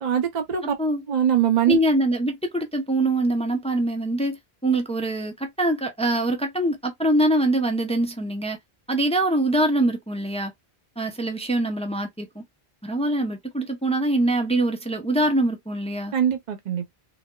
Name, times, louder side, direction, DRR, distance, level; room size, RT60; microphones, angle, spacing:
voice 1, 0.0-0.7 1.1-1.8 16.1-16.9, right 9 dB, 50° right, 0.7 m, -22 dB
voice 2, 0.6-1.0 1.7-8.6 8.9-10.5 11.0-12.4 12.8-16.1, right 1 dB, 10° left, 0.4 m, -24 dB
4.0 x 2.1 x 2.2 m
omnidirectional pair, 1.1 m